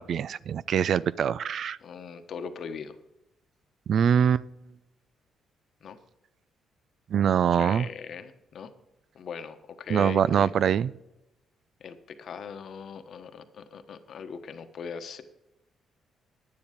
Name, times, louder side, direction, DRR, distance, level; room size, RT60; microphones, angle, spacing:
voice 1, 0.0-1.8 3.9-4.4 7.1-7.9 9.9-10.9, right 8 dB, 60° right, 20 dB, 0.3 m, -23 dB
voice 2, 1.8-3.0 5.8-6.0 7.5-8.7 9.1-10.5 11.8-15.2, left 6 dB, 60° left, 9 dB, 1.1 m, -40 dB
10.5 x 9.7 x 5.1 m, 0.93 s
cardioid pair, 90°, 0 cm